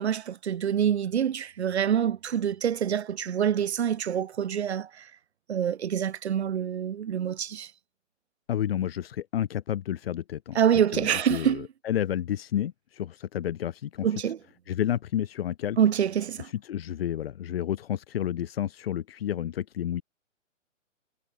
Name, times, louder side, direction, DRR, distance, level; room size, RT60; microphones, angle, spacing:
voice 1, 0.0-5.1 5.5-7.7 10.5-11.7 14.0-14.4 15.8-16.5, right 9 dB, 55° right, 3.0 m, -26 dB
voice 2, 8.5-10.6 10.9-14.3 14.7-15.8 16.4-20.0, left 10 dB, 50° left, 1.8 m, -30 dB
figure-of-eight pair, 130°, 39 cm